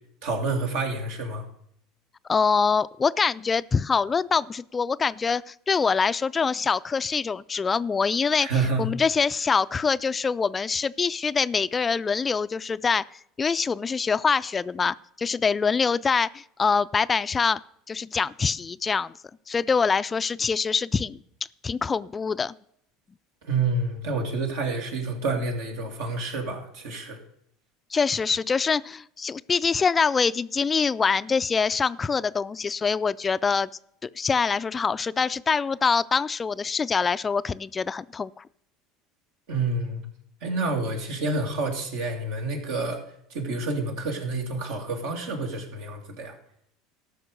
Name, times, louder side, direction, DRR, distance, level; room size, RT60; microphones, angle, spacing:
voice 1, 0.2-1.5 8.4-8.9 23.4-27.2 39.5-40.1 40.4-46.3, right 3 dB, 80° right, 2 dB, 2.5 m, -28 dB
voice 2, 2.3-8.5 8.8-17.6 17.9-19.1 19.5-21.2 21.6-22.6 27.9-33.7 34.0-38.4, left 5 dB, 25° left, 16 dB, 0.3 m, -24 dB
13.5 x 5.9 x 6.6 m, 0.69 s
supercardioid pair, 100°, 0 cm